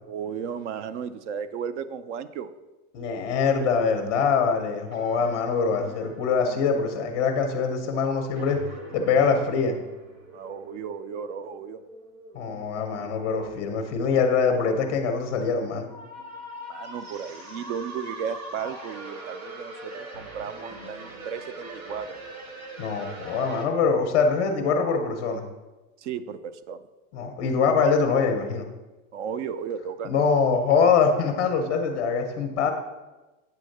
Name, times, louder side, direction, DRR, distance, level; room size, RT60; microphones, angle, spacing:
voice 1, 0.1-2.5 10.3-11.8 16.7-22.2 26.0-26.9 29.1-30.1, right 7 dB, 60° right, 13 dB, 0.5 m, -34 dB
voice 2, 2.9-8.6 8.9-9.8 12.3-15.9 22.8-25.4 27.1-28.7 30.0-32.7, left 5 dB, 25° left, 3 dB, 0.5 m, -23 dB
sound 1, 4.9-23.7, right 1 dB, 90° right, 1.8 m, -43 dB
8.6 x 3.6 x 6.4 m, 1.1 s
supercardioid pair, 180°, 41 cm